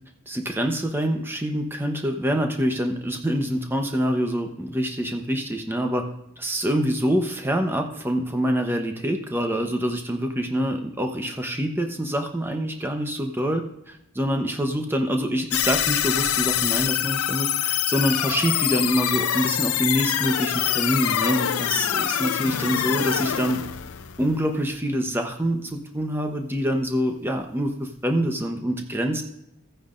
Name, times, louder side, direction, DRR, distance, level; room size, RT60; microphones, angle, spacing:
voice 1, 0.3-6.1 6.4-23.6 24.2-29.2, equal, 10° right, 4 dB, 0.9 m, -25 dB
sound 1, 15.5-24.8, left 10 dB, 85° left, 0.5 m, -25 dB
15.0 x 9.3 x 2.6 m, 0.80 s
head